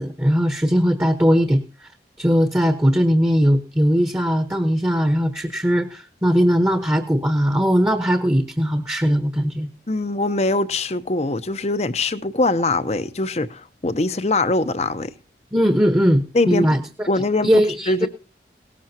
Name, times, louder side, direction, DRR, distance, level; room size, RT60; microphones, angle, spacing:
voice 1, 0.0-1.9 2.2-9.7 15.5-17.1 17.4-18.1, equal, 15° right, 1.1 m, -19 dB
voice 2, 9.9-15.1 16.3-16.7 17.1-18.1, left 2 dB, 40° left, 0.7 m, -22 dB
18.5 x 13.5 x 2.9 m
head